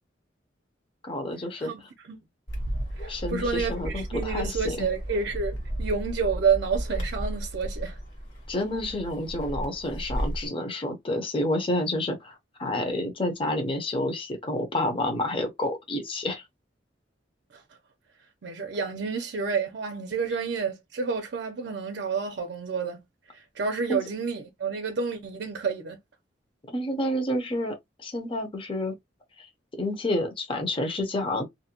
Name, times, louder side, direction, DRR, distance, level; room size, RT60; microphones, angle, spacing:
voice 1, 1.0-1.7 3.1-4.9 8.5-16.4 23.9-24.0 26.7-28.9 29.4-29.5 29.8-31.4, left 1 dB, 30° left, 0.6 m, -29 dB
voice 2, 1.6-2.2 3.0-8.0 17.5-17.6 18.4-23.0 23.3-26.0, right 5 dB, 65° right, 0.5 m, -29 dB
Bark, 2.5-10.5, equal, 65° left, 1.2 m, -33 dB
2.6 x 2.1 x 2.7 m
head